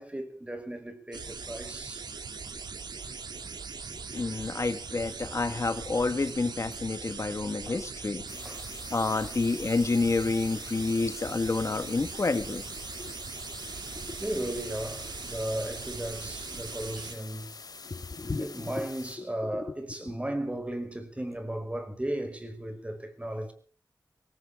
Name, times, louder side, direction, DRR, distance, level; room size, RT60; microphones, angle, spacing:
voice 1, 0.0-2.1 3.1-3.2 4.5-4.6 7.7-7.8 8.3-8.8 9.2-9.3 14.2-17.5 18.4-23.5, right 1 dB, 15° right, 5.3 m, -36 dB
sound 1, 1.1-17.1, right 5 dB, 85° right, 2.6 m, -40 dB
voice 2, 4.1-8.2 8.9-12.6 13.0-13.1 14.0-14.1 17.9-18.5 19.5-19.6, left 3 dB, 45° left, 1.5 m, -29 dB
sound 2, 8.3-19.2, left 4 dB, 65° left, 3.9 m, -46 dB
22.0 x 18.0 x 3.5 m
wide cardioid pair, 65°, 7 cm